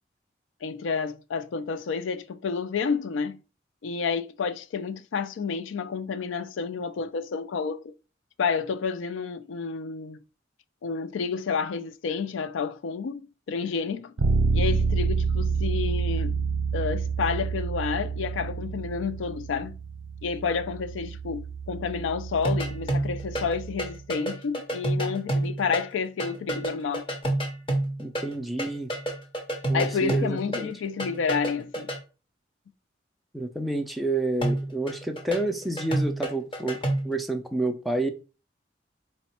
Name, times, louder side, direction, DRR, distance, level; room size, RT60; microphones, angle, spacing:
voice 1, 0.6-3.4 3.8-7.9 8.4-10.2 10.8-14.1 14.5-16.4 16.7-19.7 20.2-27.1 29.7-31.9, left 5 dB, 85° left, 0.4 m, -30 dB
Bass guitar, 14.2-24.0, right 4 dB, 75° right, 0.5 m, -29 dB
sound 1, 22.4-23.5 23.8-28.3 28.6-32.0 34.4-37.2, right 1 dB, 30° left, 0.8 m, -28 dB
voice 2, 28.0-28.9 29.7-30.7 33.3-36.8 37.0-38.1, right 2 dB, ahead, 0.3 m, -29 dB
4.2 x 2.1 x 4.2 m
head